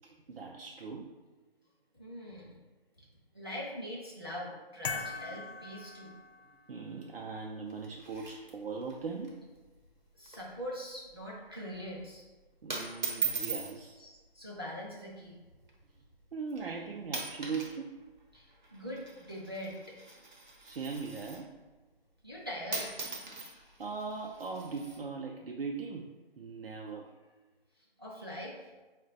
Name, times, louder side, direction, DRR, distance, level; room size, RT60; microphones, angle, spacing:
voice 1, 0.0-1.1 5.4-5.5 6.7-9.4 12.6-14.0 16.3-17.9 20.6-21.6 23.4-26.1 26.4-27.1, right 4 dB, 75° right, 0 dB, 0.5 m, -40 dB
voice 2, 1.9-2.6 3.3-6.1 10.2-12.2 14.0-15.4 18.3-19.9 22.2-22.9 28.0-28.6, equal, 25° right, -5 dB, 0.5 m, -42 dB
sound 1, 4.8-6.8, left 4 dB, 85° left, 0.5 m, -40 dB
sound 2, 7.7-8.9 9.2-9.3 9.6-9.9 10.2-10.6 10.9-11.2 11.9-12.2 12.7-13.7 14.7-15.0 15.7-15.8 16.5-16.7 17.0-17.8 18.0-21.5 22.4-22.5 22.7-25.0, right 4 dB, 50° right, 0.8 m, -40 dB
4.2 x 2.2 x 3.7 m, 1.3 s
figure-of-eight pair, 170°, 30 cm